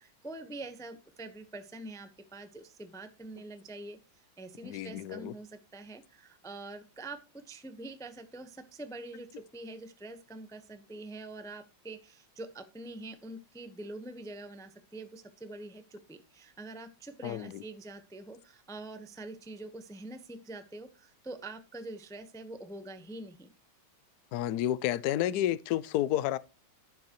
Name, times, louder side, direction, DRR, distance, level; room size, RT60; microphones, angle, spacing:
voice 1, 0.0-4.0 4.4-23.5, right 2 dB, 5° left, 0.5 m, -45 dB
voice 2, 4.6-5.3 17.2-17.6 24.3-26.4, left 12 dB, 70° left, 0.9 m, -30 dB
11.5 x 9.4 x 3.0 m
omnidirectional pair, 2.2 m